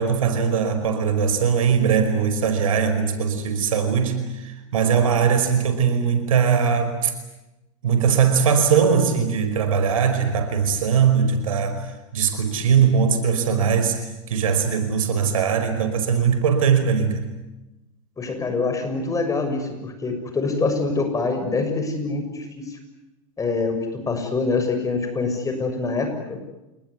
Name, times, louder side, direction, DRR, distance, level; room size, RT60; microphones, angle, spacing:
voice 1, 0.0-7.1 7.8-14.0 14.3-17.3, right 6 dB, 85° right, 8 dB, 5.2 m, -20 dB
voice 2, 18.2-22.8 23.4-23.8 24.1-26.4, left 3 dB, 20° left, 6 dB, 6.5 m, -25 dB
28.5 x 20.0 x 9.8 m, 1.0 s
hypercardioid pair, 110°, 17 cm